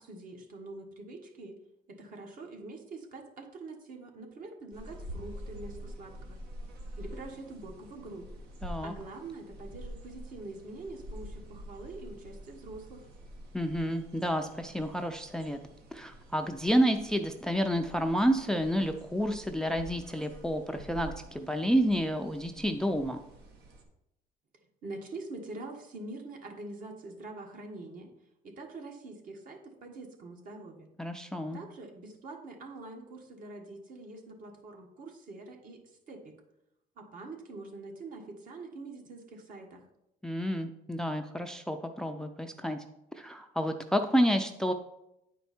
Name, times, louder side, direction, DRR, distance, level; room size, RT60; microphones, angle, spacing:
voice 1, 0.0-1.6 1.9-6.4 7.0-8.3 8.8-13.0 24.8-28.1 28.4-30.9 31.5-35.8 36.1-36.3 37.0-39.8, right 2 dB, 55° right, 2 dB, 1.6 m, -45 dB
sound 1, 4.7-23.8, equal, 75° right, 1.5 m, -47 dB
voice 2, 8.6-8.9 13.5-15.6 15.9-23.2 31.0-31.6 40.2-42.8 43.1-44.7, equal, 5° left, 6 dB, 0.4 m, -30 dB
9.4 x 4.6 x 4.3 m, 0.85 s
cardioid pair, 110°, 17 cm